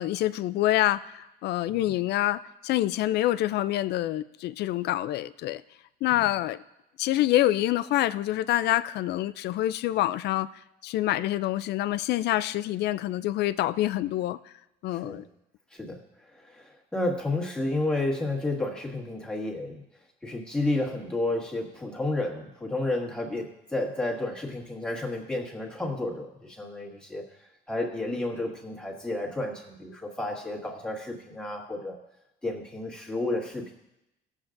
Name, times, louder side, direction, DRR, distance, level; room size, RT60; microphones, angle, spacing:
voice 1, 0.0-5.6 6.0-6.6 7.0-10.5 10.8-14.4 14.8-15.2, left 14 dB, 65° left, 15 dB, 0.4 m, -26 dB
voice 2, 16.4-19.8 20.2-27.2 27.7-32.0 32.4-33.7, left 2 dB, 5° left, -3 dB, 1.8 m, -31 dB
19.5 x 7.3 x 2.6 m, 0.88 s
cardioid pair, 125°, 19 cm